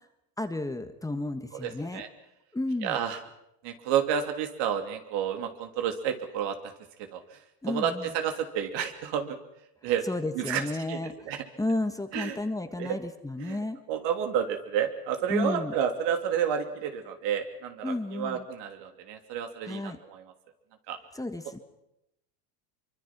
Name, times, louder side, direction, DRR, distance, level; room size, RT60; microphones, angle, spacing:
voice 1, 0.4-2.0 2.5-3.0 7.6-8.1 10.1-11.1 11.6-13.8 15.3-15.7 17.8-18.4 19.7-20.0 21.1-21.6, left 2 dB, 5° left, 8 dB, 1.5 m, -32 dB
voice 2, 1.5-2.1 2.8-3.2 3.6-6.7 7.0-9.4 9.8-10.1 10.3-11.4 12.1-12.4 12.8-13.0 13.4-20.3 20.9-21.0, right 8 dB, 65° right, 6 dB, 3.1 m, -31 dB
24.5 x 24.0 x 6.1 m, 0.84 s
supercardioid pair, 110°, 45 cm